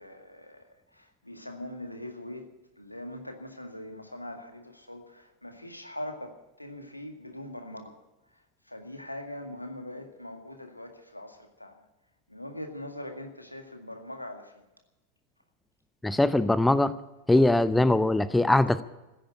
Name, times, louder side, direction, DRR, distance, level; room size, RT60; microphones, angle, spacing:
voice 1, 0.0-2.5 2.8-8.0 8.3-11.8 12.3-14.6, left 1 dB, 85° left, 5 dB, 2.0 m, -42 dB
voice 2, 16.0-16.9 17.3-18.8, left 2 dB, 5° left, 15 dB, 0.6 m, -22 dB
15.5 x 10.0 x 9.1 m, 1.0 s
figure-of-eight pair, 90°, 0 cm